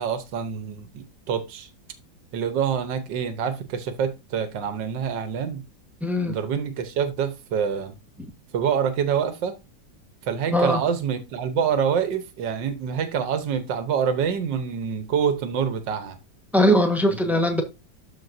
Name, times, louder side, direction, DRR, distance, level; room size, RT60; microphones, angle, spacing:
voice 1, 0.0-1.7 2.3-5.6 6.3-8.0 8.5-9.5 10.2-16.2 17.1-17.2, right 7 dB, 85° right, 1.6 m, -26 dB
voice 2, 6.0-6.3 10.5-10.8 16.5-17.6, equal, ahead, 0.9 m, -20 dB
12.5 x 4.3 x 2.6 m
omnidirectional pair, 1.9 m